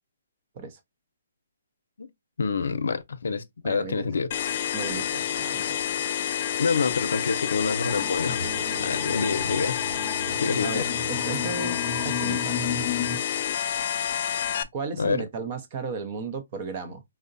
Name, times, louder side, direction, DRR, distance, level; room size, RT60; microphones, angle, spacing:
voice 1, 2.4-4.3 6.6-8.5 8.8-9.8 10.4-10.9 13.4-13.5 15.0-15.2, left 5 dB, 75° left, 0.6 m, -27 dB
voice 2, 3.6-4.1 4.7-5.9 10.6-12.6 14.7-17.0, right 4 dB, 30° right, 0.7 m, -35 dB
sound 1, 4.3-14.6, left 9 dB, 35° left, 0.3 m, -29 dB
sound 2, 7.9-13.2, left 4 dB, 5° left, 1.0 m, -33 dB
4.7 x 2.1 x 2.6 m
hypercardioid pair, 170°, 0 cm